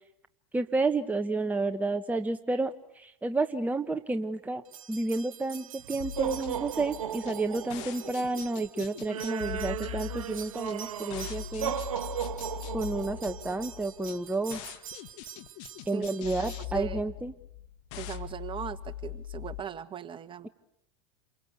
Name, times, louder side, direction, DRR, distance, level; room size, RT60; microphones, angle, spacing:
voice 1, 0.5-11.8 12.7-14.6 15.9-17.3, right 3 dB, 10° right, 6 dB, 1.3 m, -31 dB
sound 1, 4.7-16.6, right 9 dB, 90° right, 1.0 m, -38 dB
sound 2, 6.0-19.6, left 13 dB, 65° left, 1.7 m, -41 dB
voice 2, 15.9-17.0 17.9-20.5, right 9 dB, 30° right, 11 dB, 1.6 m, -39 dB
28.5 x 23.5 x 8.2 m, 0.76 s
hypercardioid pair, 90°, 17 cm